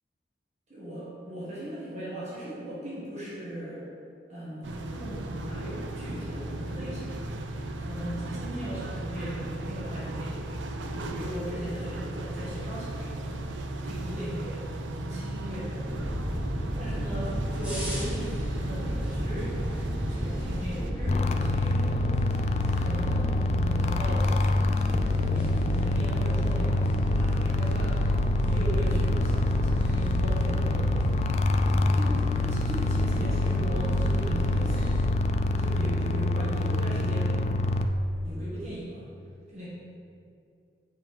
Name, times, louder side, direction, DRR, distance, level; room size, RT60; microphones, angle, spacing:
voice 1, 0.7-3.8 4.3-7.2 7.8-10.5 10.9-13.3 13.7-14.7 14.9-16.1 16.7-19.7 20.1-22.1 22.6-24.3 25.2-28.0 28.4-31.1 31.6-34.9 35.6-37.4 38.2-39.0 39.5-39.7, equal, 40° right, -9 dB, 1.7 m, -38 dB
sound 1, 4.6-20.9, right 1 dB, 90° right, 0.5 m, -36 dB
sound 2, 15.8-35.1, equal, 5° right, 1.7 m, -31 dB
sound 3, 21.1-37.8, left 2 dB, 35° left, 0.3 m, -26 dB
7.9 x 4.6 x 4.7 m, 2.4 s
head